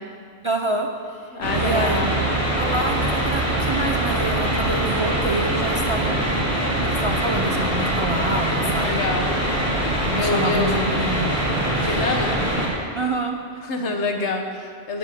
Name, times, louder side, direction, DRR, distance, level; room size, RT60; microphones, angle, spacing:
voice 1, 0.4-2.1 2.6-6.4 6.9-9.0 10.0-11.3 11.7-12.0 12.9-13.6, right 2 dB, 45° right, 2 dB, 0.4 m, -27 dB
voice 2, 1.3-2.3 8.8-9.3 10.2-11.0 11.8-12.4 13.6-15.0, left 3 dB, 85° left, 3 dB, 1.3 m, -26 dB
sound 1, 1.4-12.7, right 1 dB, 15° right, 2.4 m, -23 dB
11.0 x 4.9 x 8.3 m, 2.2 s
omnidirectional pair, 1.1 m